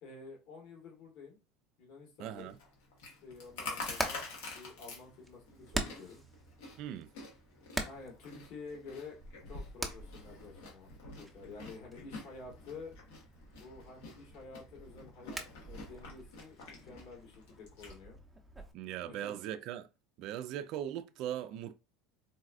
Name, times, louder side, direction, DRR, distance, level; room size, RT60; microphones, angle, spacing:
voice 1, 0.0-1.4 1.8-2.5 3.2-6.2 7.8-9.2 9.5-10.9 11.2-12.9 13.6-18.2 19.0-19.3, left 4 dB, 65° left, 1.4 m, -50 dB
voice 2, 2.2-2.6 6.8-7.1 18.7-19.9 20.2-21.8, right 11 dB, 60° right, 0.3 m, -39 dB
Chewing mastication, 2.4-17.9, left 3 dB, 85° left, 1.2 m, -48 dB
Hammer, 3.5-18.7, right 1 dB, 5° right, 0.7 m, -45 dB
4.0 x 2.3 x 2.4 m
supercardioid pair, 105°, 0 cm